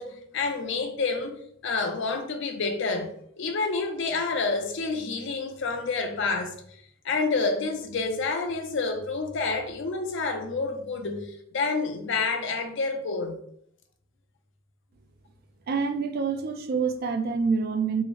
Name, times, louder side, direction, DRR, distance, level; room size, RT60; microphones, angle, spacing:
voice 1, 0.0-1.3 1.6-6.6 7.0-13.4, left 4 dB, 60° left, 0.5 m, -28 dB
voice 2, 15.7-18.0, right 5 dB, 45° right, 0.3 m, -26 dB
3.6 x 2.0 x 3.1 m
head